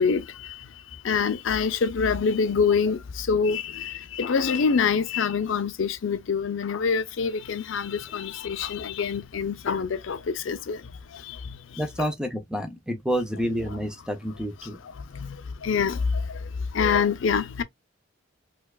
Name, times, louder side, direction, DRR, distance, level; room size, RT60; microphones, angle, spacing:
voice 1, 0.0-11.8 15.0-17.6, left 5 dB, 70° left, 0.5 m, -26 dB
voice 2, 11.8-14.8, equal, 5° right, 0.5 m, -29 dB
4.4 x 2.3 x 2.3 m
head